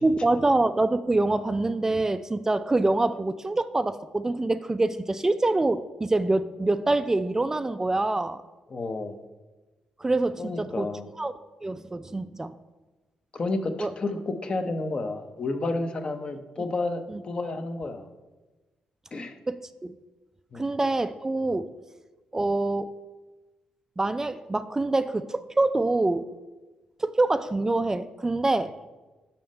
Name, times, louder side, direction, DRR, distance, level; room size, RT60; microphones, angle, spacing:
voice 1, 0.0-8.4 10.0-10.9 11.2-11.3 11.6-12.5 13.8-13.9 17.1-17.2 19.5-19.9 20.5-21.7 22.3-22.9 24.0-26.3 27.0-28.7, right 2 dB, 20° right, 11 dB, 0.3 m, -25 dB
voice 2, 8.7-9.2 10.4-11.1 13.3-18.1 19.1-19.4 20.5-20.7, left 2 dB, 40° left, 7 dB, 0.7 m, -31 dB
5.8 x 5.3 x 5.3 m, 1.2 s
cardioid pair, 70°, 3 cm